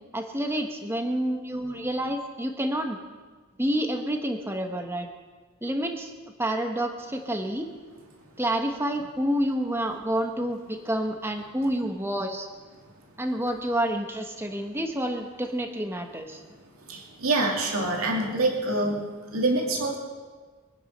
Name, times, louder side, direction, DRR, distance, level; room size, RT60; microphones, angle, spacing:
voice 1, 0.1-3.0 3.6-5.1 5.6-6.1 6.4-7.7 8.4-12.5 13.2-16.4, right 1 dB, 10° right, 4 dB, 1.3 m, -28 dB
voice 2, 16.8-20.0, right 2 dB, 80° right, 0 dB, 2.6 m, -26 dB
24.0 x 9.8 x 5.5 m, 1.4 s
head